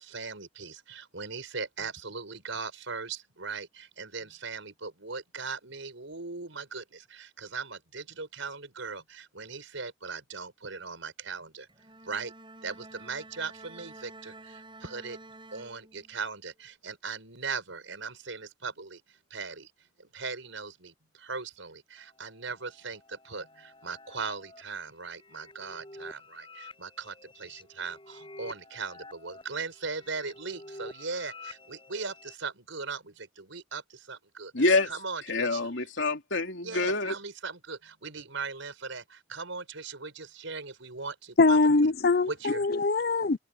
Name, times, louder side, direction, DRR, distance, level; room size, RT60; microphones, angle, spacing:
voice 1, 0.0-11.7 12.0-12.3 12.6-15.2 15.5-19.0 19.3-19.7 20.0-34.5 34.9-35.6 36.6-41.6 42.3-42.7, right 4 dB, 80° right, 5.0 m, -39 dB
Bowed string instrument, 11.7-16.4, right 2 dB, 25° right, 6.8 m, -50 dB
sound 1, 22.0-32.3, left 2 dB, 25° left, 7.5 m, -50 dB
voice 2, 34.5-34.9 35.2-37.1, left 3 dB, 70° left, 3.0 m, -26 dB
voice 3, 41.4-43.4, left 3 dB, 50° left, 0.6 m, -22 dB
head